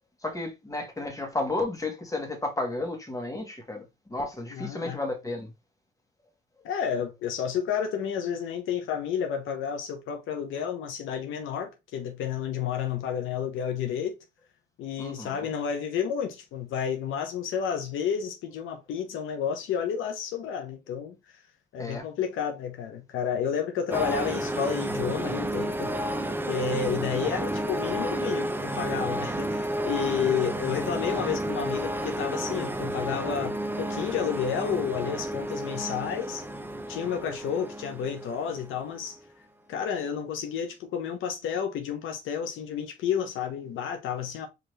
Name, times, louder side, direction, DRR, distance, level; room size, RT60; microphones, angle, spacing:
voice 1, 0.2-5.5 15.0-15.5 21.8-22.1 26.6-26.9, left 2 dB, 15° left, 1.5 m, -33 dB
voice 2, 4.5-5.0 6.6-14.2 14.8-21.2 21.7-25.9 26.5-36.4 36.9-39.2 39.7-44.5, left 7 dB, 85° left, 0.9 m, -31 dB
sound 1, 23.9-39.0, right 1 dB, 10° right, 0.6 m, -31 dB
4.8 x 3.0 x 3.1 m
cardioid pair, 90°, 20 cm